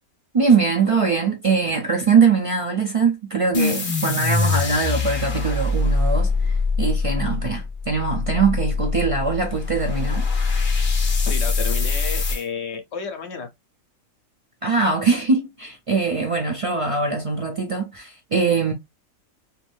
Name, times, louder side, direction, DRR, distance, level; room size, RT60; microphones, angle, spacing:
voice 1, 0.3-10.3 14.6-18.7, right 5 dB, 55° right, 0.3 m, -22 dB
sound 1, 3.5-12.4, left 4 dB, 25° left, 0.6 m, -23 dB
voice 2, 11.2-13.5, left 6 dB, 60° left, 0.9 m, -31 dB
2.6 x 2.6 x 3.3 m
omnidirectional pair, 1.4 m